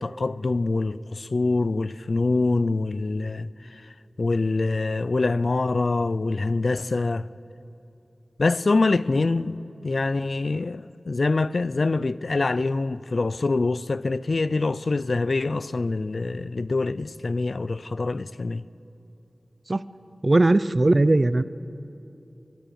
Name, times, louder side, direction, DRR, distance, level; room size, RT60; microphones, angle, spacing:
voice 1, 0.0-3.8 4.2-7.3 8.4-18.6, left 3 dB, 65° left, 0.5 m, -25 dB
voice 2, 20.2-21.4, right 2 dB, 40° right, 0.7 m, -19 dB
25.5 x 23.0 x 7.1 m
wide cardioid pair, 55°, 0 cm